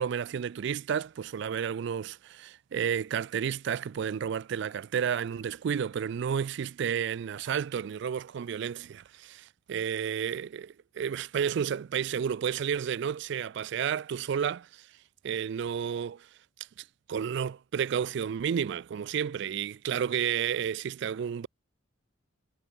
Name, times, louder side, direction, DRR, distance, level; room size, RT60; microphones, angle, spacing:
voice 1, 0.0-14.9 15.2-16.3 17.1-21.5, right 8 dB, 60° right, 0.3 m, -31 dB
head